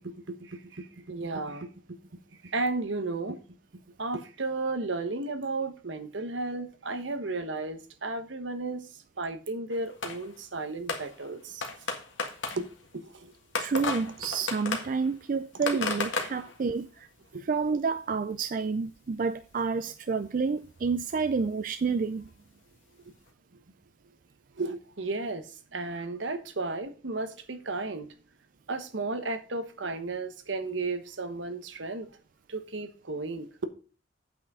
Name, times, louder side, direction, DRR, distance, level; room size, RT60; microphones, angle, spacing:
voice 1, 0.0-1.7 2.4-3.4 4.0-8.9 9.2-11.6 12.5-12.7 12.9-13.3 15.7-15.8 17.3-17.4 24.6-28.1 28.7-32.1 32.5-33.7, right 3 dB, 75° right, 1.1 m, -34 dB
sound 1, 9.7-10.4 10.9-17.0 17.9-18.0 18.2-18.3 18.7-18.8 20.2-20.3 20.8-20.9 22.3-22.4 23.3-23.4, left 3 dB, 85° left, 1.7 m, -35 dB
voice 2, 13.6-17.1 17.5-22.3, right 5 dB, 45° right, 0.4 m, -29 dB
8.5 x 6.0 x 5.5 m
head